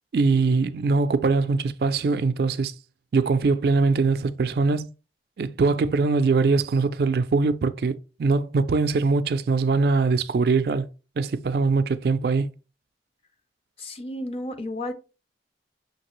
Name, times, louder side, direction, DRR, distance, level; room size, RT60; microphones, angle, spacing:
voice 1, 0.1-2.7 3.1-4.9 5.4-7.9 8.2-10.9 11.2-12.5, right 4 dB, 60° right, 0.3 m, -22 dB
voice 2, 13.8-14.9, left 1 dB, 30° left, 0.5 m, -32 dB
5.8 x 2.7 x 3.0 m
head